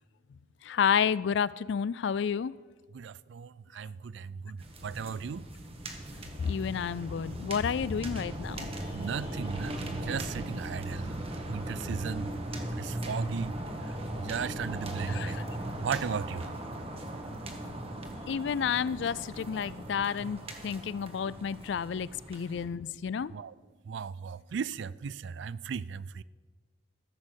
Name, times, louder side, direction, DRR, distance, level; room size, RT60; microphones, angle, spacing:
voice 1, 0.6-2.5 6.4-8.7 15.1-15.4 18.3-23.3, left 7 dB, 65° left, 0.3 m, -30 dB
voice 2, 2.9-3.5 3.8-4.6 4.8-5.4 8.9-11.0 11.5-12.3 12.8-13.5 14.3-15.3 15.8-16.5 23.3-23.5 23.9-26.2, right 6 dB, 65° right, 0.4 m, -36 dB
sound 1, 4.6-22.7, right 1 dB, 30° right, 1.3 m, -38 dB
14.5 x 7.5 x 6.3 m
head